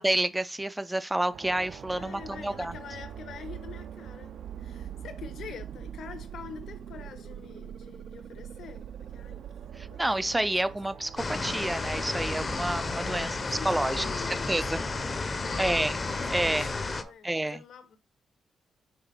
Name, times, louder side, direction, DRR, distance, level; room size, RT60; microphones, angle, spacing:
voice 1, 0.0-2.7 9.8-14.1 14.5-14.8 15.6-16.0 16.3-16.7 17.2-17.6, right 1 dB, 10° right, 0.3 m, -29 dB
sound 1, 1.3-17.1, right 9 dB, 65° right, 0.5 m, -44 dB
voice 2, 1.9-9.4 9.8-10.0 13.0-18.0, left 7 dB, 70° left, 1.1 m, -46 dB
sound 2, 11.2-17.0, left 3 dB, 25° left, 0.7 m, -32 dB
5.9 x 3.7 x 5.5 m
wide cardioid pair, 160°, 0 cm